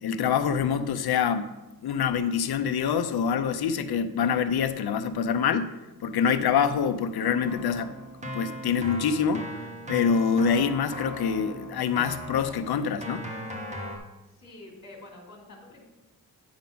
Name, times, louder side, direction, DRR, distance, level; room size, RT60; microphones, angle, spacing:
voice 1, 0.0-1.5 1.8-5.7 6.0-7.9 8.2-9.6 9.9-13.3, left 7 dB, 80° left, 10 dB, 0.6 m, -25 dB
Keyboard (musical), 7.4-14.0, equal, 20° right, 1.2 m, -38 dB
voice 2, 14.3-15.8, left 2 dB, 45° left, 0 dB, 2.2 m, -47 dB
9.5 x 3.9 x 5.7 m, 1.0 s
wide cardioid pair, 125°, 37 cm